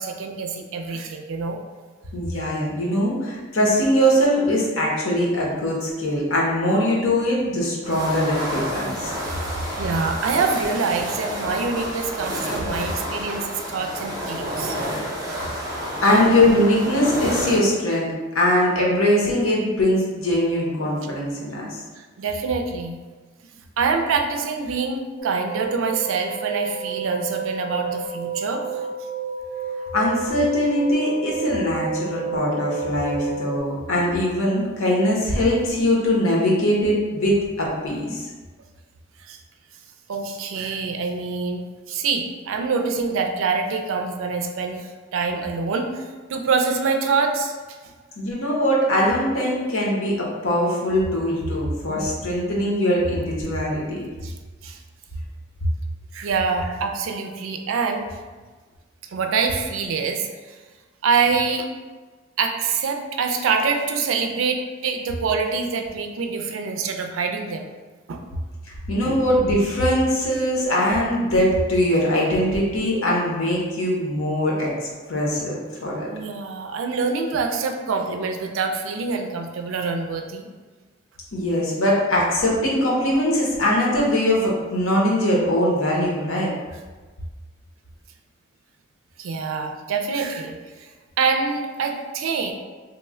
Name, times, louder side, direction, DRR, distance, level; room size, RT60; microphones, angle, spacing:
voice 1, 0.0-1.6 9.8-14.8 15.3-15.4 16.0-16.1 22.0-23.0 23.8-28.8 39.2-39.4 40.1-46.0 46.3-47.5 54.2-54.3 54.6-54.8 56.1-58.0 59.1-60.3 61.0-61.7 62.4-67.7 68.1-68.2 69.0-69.2 76.1-80.5 89.2-90.9 91.2-92.5, right 4 dB, 80° right, 4 dB, 0.4 m, -25 dB
voice 2, 2.1-9.1 15.5-15.7 16.0-18.1 18.3-21.8 29.9-38.3 48.2-54.0 68.7-74.7 75.1-76.1 81.3-86.5, left 1 dB, 90° left, -3 dB, 0.8 m, -21 dB
sound 1, 7.8-17.6, equal, 15° right, 0.5 m, -29 dB
sound 2, 25.2-33.6, right 4 dB, 40° left, 0.6 m, -31 dB
3.0 x 2.1 x 3.5 m, 1.3 s
head